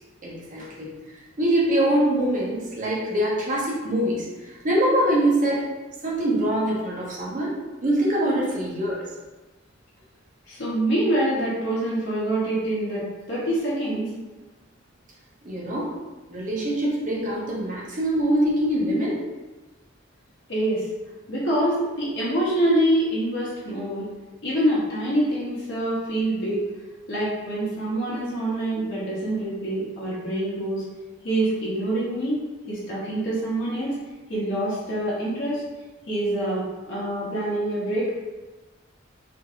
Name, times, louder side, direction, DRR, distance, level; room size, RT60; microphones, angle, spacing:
voice 1, 0.2-0.9 1.4-5.7 6.0-7.6 7.8-9.0 15.4-15.9 16.3-19.2, right 1 dB, 45° right, -5 dB, 0.7 m, -24 dB
voice 2, 10.5-14.1 20.5-20.9 21.3-24.1 24.4-26.6 27.1-30.8 31.2-32.4 32.7-34.0 34.3-35.6 36.1-38.1, right 1 dB, 65° left, -7 dB, 0.9 m, -25 dB
2.9 x 2.7 x 2.4 m, 1.1 s
head